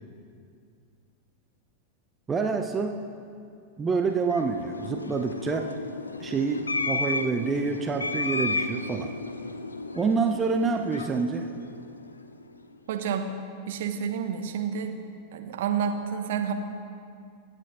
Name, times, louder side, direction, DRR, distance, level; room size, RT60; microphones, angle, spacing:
voice 1, 2.3-3.0 3.8-5.7 6.2-9.1 9.9-11.5, right 4 dB, 20° right, 4 dB, 0.8 m, -27 dB
sound 1, 4.0-12.5, left 3 dB, 80° left, 0.6 m, -33 dB
voice 2, 12.9-13.4 13.7-14.9 15.3-16.5, right 7 dB, 55° right, 5 dB, 1.3 m, -29 dB
25.0 x 9.2 x 3.9 m, 2.3 s
figure-of-eight pair, 90°, 0 cm